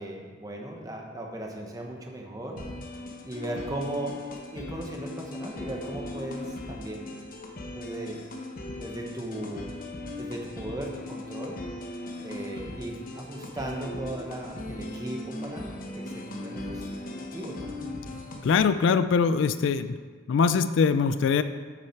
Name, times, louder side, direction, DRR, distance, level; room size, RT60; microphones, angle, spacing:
voice 1, 0.0-2.6 3.2-4.2 4.5-7.2 7.7-8.2 8.8-9.7 10.2-11.6 12.2-15.7 15.9-16.8 17.3-17.7, right 1 dB, 15° right, 0 dB, 1.1 m, -37 dB
sound 1, 2.6-18.6, left 2 dB, 45° left, 1.0 m, -39 dB
voice 2, 18.4-19.9 20.3-21.4, left 5 dB, 65° left, 12 dB, 0.3 m, -22 dB
8.8 x 6.3 x 4.5 m, 1.5 s
head